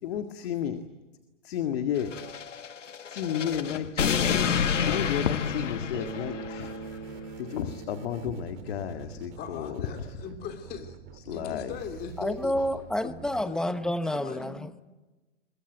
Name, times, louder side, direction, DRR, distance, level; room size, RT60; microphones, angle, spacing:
voice 1, 0.0-0.8 1.4-2.1 3.1-6.7 7.4-10.2 11.3-11.7, left 9 dB, 55° left, 2.0 m, -32 dB
sound 1, 2.0-6.8, left 7 dB, 85° left, 1.7 m, -29 dB
Bass guitar, 5.9-9.9, right 4 dB, 65° right, 4.9 m, -43 dB
sound 2, 6.6-13.4, right 9 dB, 35° right, 2.7 m, -47 dB
voice 2, 9.4-11.0 11.3-12.5 13.0-13.2 13.4-13.6 14.1-14.6, left 7 dB, 25° left, 3.3 m, -39 dB
voice 3, 12.2-14.8, left 1 dB, ahead, 0.9 m, -29 dB
23.5 x 21.0 x 9.3 m
hypercardioid pair, 130°, 36 cm